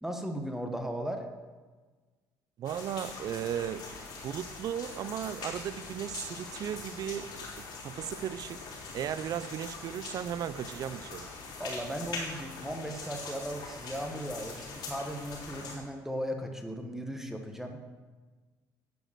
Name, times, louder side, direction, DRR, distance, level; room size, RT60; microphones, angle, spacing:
voice 1, 0.0-1.2 11.6-17.9, equal, 5° right, 4 dB, 1.4 m, -37 dB
sound 1, 2.6-15.7, left 4 dB, 75° left, 3.6 m, -42 dB
voice 2, 2.6-3.8 4.2-7.4 7.8-8.6 8.9-11.3, right 10 dB, 55° right, 16 dB, 0.5 m, -36 dB
10.5 x 5.1 x 7.6 m, 1.4 s
supercardioid pair, 90°, 7 cm